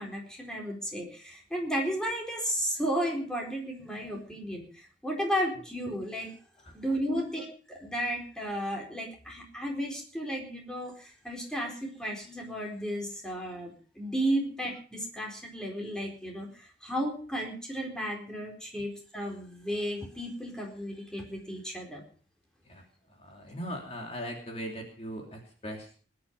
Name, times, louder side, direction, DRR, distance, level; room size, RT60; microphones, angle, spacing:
voice 1, 0.0-6.3 6.7-22.0, equal, 5° left, 0 dB, 4.3 m, -34 dB
voice 2, 22.6-25.9, equal, 35° left, 1 dB, 3.1 m, -39 dB
20.0 x 11.5 x 5.4 m, 0.42 s
head